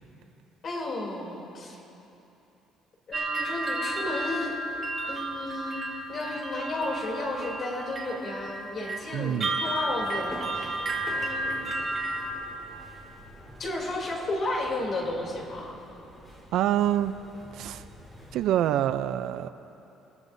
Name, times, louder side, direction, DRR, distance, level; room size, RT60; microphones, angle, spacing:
voice 1, 0.6-1.8 3.1-4.5 5.1-5.8 6.1-10.8 11.1-11.9 13.6-15.8, left 2 dB, 35° left, -1 dB, 3.1 m, -33 dB
sound 1, 3.1-12.3, right 2 dB, 30° right, 2.4 m, -32 dB
voice 2, 9.1-9.5 16.5-17.1 17.5-17.8 18.3-19.5, right 11 dB, 65° right, 12 dB, 0.4 m, -26 dB
sound 2, 9.6-18.4, equal, 15° left, 3.9 m, -47 dB
29.5 x 15.5 x 2.7 m, 3.0 s
cardioid pair, 160°, 0 cm